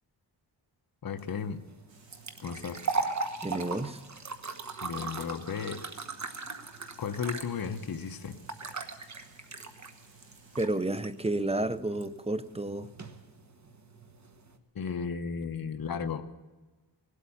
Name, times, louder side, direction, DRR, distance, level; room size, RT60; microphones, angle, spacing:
voice 1, 1.0-1.6 2.4-2.9 4.8-5.8 7.0-8.4 14.7-16.3, left 6 dB, 50° left, 0.9 m, -34 dB
sound 1, 1.2-14.6, right 4 dB, 40° right, 1.3 m, -39 dB
Water, 1.9-10.7, right 3 dB, 80° right, 3.2 m, -61 dB
voice 2, 3.4-4.0 10.6-12.9, right 2 dB, 15° right, 0.6 m, -31 dB
18.0 x 8.4 x 8.5 m
wide cardioid pair, 90°, 44 cm